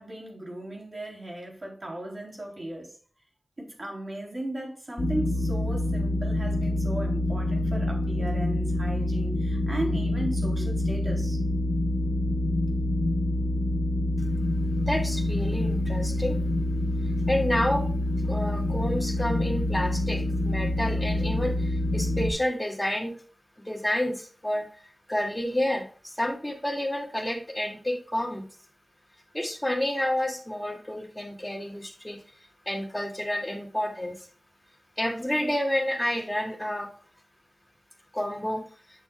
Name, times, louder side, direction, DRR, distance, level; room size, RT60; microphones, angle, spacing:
voice 1, 0.0-2.9 3.6-11.4, right 1 dB, 50° right, 3.4 m, -36 dB
sound 1, 5.0-22.3, left 1 dB, 85° left, 0.8 m, -26 dB
voice 2, 14.9-16.4 17.3-17.8 18.3-23.2 23.7-24.7 25.1-28.5 29.3-32.2 32.7-34.3 35.0-36.9 38.1-38.6, left 1 dB, 15° left, 2.2 m, -29 dB
8.7 x 6.9 x 2.3 m
wide cardioid pair, 45°, 0 cm